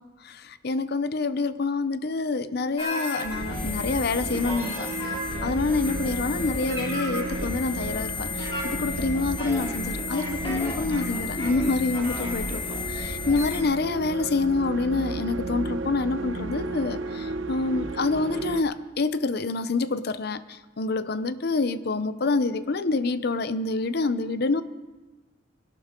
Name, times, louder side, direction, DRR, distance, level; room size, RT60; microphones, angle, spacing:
voice 1, 0.2-4.9 5.4-12.6 12.9-24.6, left 3 dB, 55° left, 13 dB, 0.6 m, -27 dB
sound 1, 2.8-13.6, left 2 dB, 30° left, 2.4 m, -32 dB
sound 2, 3.4-18.6, right 2 dB, 75° right, 0.8 m, -34 dB
21.0 x 12.0 x 3.7 m, 1.2 s
head